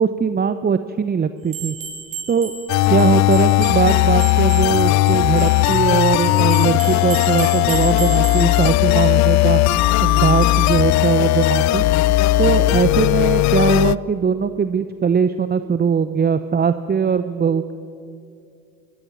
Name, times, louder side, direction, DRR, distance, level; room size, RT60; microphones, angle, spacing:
voice 1, 0.0-1.8 2.3-2.5 2.9-9.6 10.0-11.8 12.4-17.7, right 6 dB, 25° right, 11 dB, 0.8 m, -20 dB
sound 1, 1.5-8.7, right 5 dB, 50° right, 5.6 m, -34 dB
sound 2, 2.7-13.9, left 18 dB, 45° left, 0.4 m, -17 dB
23.0 x 16.0 x 7.4 m, 2.4 s
hypercardioid pair, 65°, 42 cm